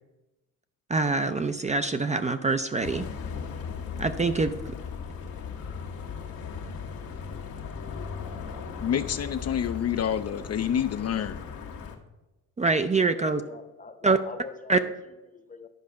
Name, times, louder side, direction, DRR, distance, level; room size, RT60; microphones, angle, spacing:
voice 1, 0.9-3.1 4.0-4.5 12.6-13.4 14.0-14.2 14.7-14.8, right 3 dB, 20° right, 9 dB, 0.5 m, -24 dB
sound 1, 2.8-12.0, left 6 dB, 80° left, 1.4 m, -37 dB
voice 2, 8.8-11.5, left 9 dB, 45° left, 9 dB, 0.5 m, -28 dB
voice 3, 13.1-15.7, left 4 dB, 25° left, 10 dB, 0.9 m, -44 dB
10.5 x 4.7 x 6.4 m, 1.1 s
cardioid pair, 100°, 34 cm